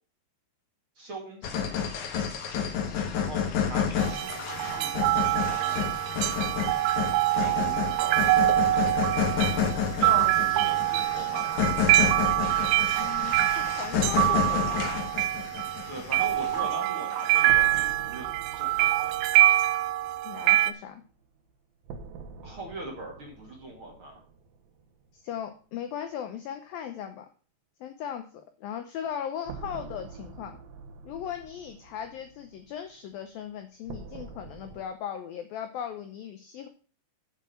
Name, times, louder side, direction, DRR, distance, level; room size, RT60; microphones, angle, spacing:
voice 1, 1.0-1.9 3.1-5.9 7.4-8.8 10.0-11.7 15.9-19.2 22.4-24.2, right 1 dB, 35° right, -1 dB, 2.6 m, -40 dB
sound 1, 1.4-16.9, left 7 dB, 65° left, 2.1 m, -30 dB
sound 2, 4.0-20.7, right 15 dB, 85° right, 2.3 m, -25 dB
voice 2, 12.9-15.0 20.2-21.0 25.2-27.3 27.8-30.6 31.1-36.7, left 9 dB, 85° left, 7 dB, 2.0 m, -38 dB
sound 3, 17.4-25.2 25.5-25.6 29.4-34.8, right 5 dB, 65° right, 2.5 m, -46 dB
8.3 x 8.3 x 5.8 m, 0.39 s
omnidirectional pair, 5.3 m